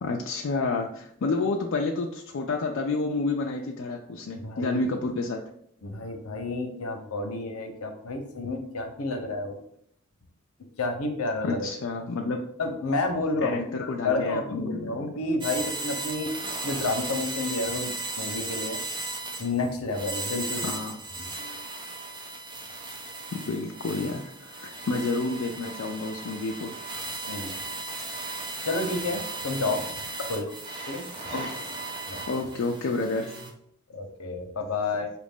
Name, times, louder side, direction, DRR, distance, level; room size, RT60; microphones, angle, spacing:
voice 1, 0.0-5.4 11.4-12.4 13.4-15.1 20.6-21.0 23.3-26.8 31.3-31.7 32.3-33.5, left 3 dB, 60° left, 1 dB, 0.4 m, -30 dB
voice 2, 4.4-4.9 5.8-9.6 10.8-11.7 12.6-16.3 16.6-17.9 18.2-18.8 19.4-20.7 21.2-21.6 27.3-27.5 28.6-29.8 30.3-30.4 30.9-31.0 32.1-32.2 33.9-35.1, left 2 dB, 80° left, 5 dB, 0.7 m, -30 dB
sound 1, 15.4-33.5, right 3 dB, 20° right, 0.6 m, -36 dB
4.7 x 2.5 x 3.5 m, 0.67 s
head